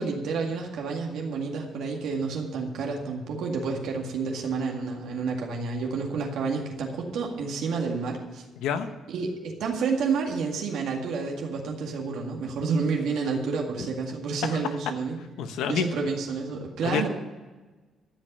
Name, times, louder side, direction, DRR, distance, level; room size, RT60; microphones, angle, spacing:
voice 1, 0.0-8.5 9.1-15.2 15.7-17.1, right 4 dB, 80° right, 0 dB, 2.0 m, -29 dB
voice 2, 15.4-15.8 16.8-17.1, left 8 dB, 85° left, 9 dB, 1.0 m, -28 dB
14.0 x 5.6 x 9.8 m, 1.2 s
cardioid pair, 90°, 0 cm